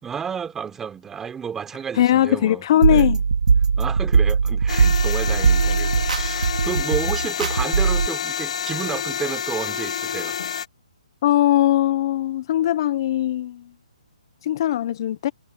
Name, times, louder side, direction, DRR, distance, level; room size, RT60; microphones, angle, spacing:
voice 1, 0.0-3.1 3.8-10.4, right 7 dB, 10° right, 3.9 m, -31 dB
voice 2, 2.0-3.2 11.2-13.6 14.4-15.3, left 12 dB, 35° left, 0.8 m, -20 dB
sound 1, 2.8-8.1, right 5 dB, 75° right, 2.3 m, -19 dB
sound 2, 4.7-10.7, left 8 dB, 55° left, 1.3 m, -28 dB
hypercardioid pair, 160°, 4 cm